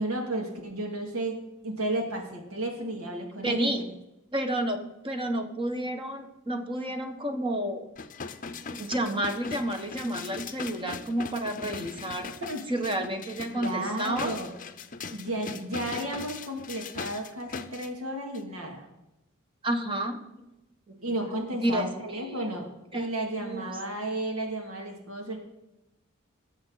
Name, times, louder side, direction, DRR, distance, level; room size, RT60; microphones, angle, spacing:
voice 1, 0.0-1.4 1.6-3.9 12.5-12.6 13.5-14.5 15.1-18.9 21.0-22.7 22.9-25.4, right 1 dB, 80° right, 2 dB, 2.6 m, -33 dB
voice 2, 3.4-3.8 4.3-7.9 8.8-12.3 12.7-14.3 19.6-20.4 20.9-21.0 21.6-21.8 22.2-22.4 22.9-23.1 23.4-23.7, right 1 dB, 25° right, 6 dB, 1.3 m, -30 dB
sound 1, 8.0-17.9 18.3-18.4, left 5 dB, 40° left, 0.7 m, -40 dB
19.5 x 7.4 x 4.0 m, 0.92 s
head